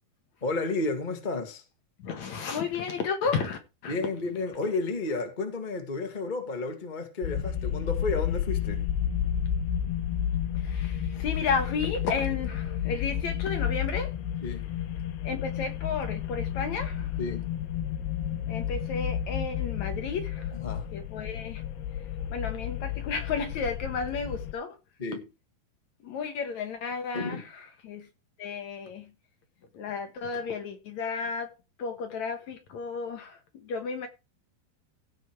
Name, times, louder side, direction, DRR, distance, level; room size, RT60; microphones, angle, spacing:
voice 1, 0.4-1.6 3.9-8.8 14.4-14.7 17.2-17.5 20.5-20.9 25.0-25.3 27.1-27.4, left 3 dB, 40° left, 0.6 m, -32 dB
voice 2, 2.0-4.0 10.5-14.1 15.2-17.1 18.5-20.5 20.9-21.6 22.3-24.8 26.0-28.1 28.4-29.1 29.7-31.5 31.8-34.1, left 5 dB, 60° left, 2.1 m, -33 dB
sound 1, 7.2-24.5, left 9 dB, 80° left, 2.9 m, -31 dB
16.0 x 5.6 x 4.6 m
omnidirectional pair, 4.6 m